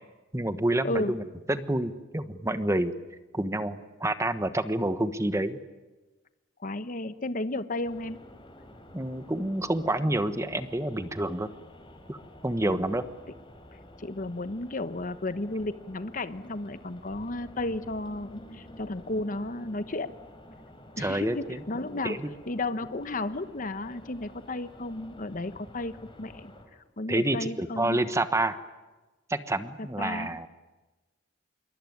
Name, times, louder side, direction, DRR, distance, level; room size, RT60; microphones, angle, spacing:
voice 1, 0.3-1.2 1.5-2.9 3.3-5.6 8.9-11.5 12.1-12.2 12.4-13.0 21.0-21.6 22.0-22.3 27.1-28.6 29.3-30.5, right 1 dB, 15° right, 11 dB, 1.2 m, -28 dB
voice 2, 6.6-8.2 12.6-12.8 14.0-20.1 21.0-22.2 22.5-25.9 26.2-26.5 27.0-28.0 29.8-30.3, left 2 dB, 45° left, 12 dB, 1.1 m, -33 dB
sound 1, 7.8-26.7, left 1 dB, 30° left, 4.8 m, -50 dB
27.0 x 23.0 x 9.6 m, 1.2 s
head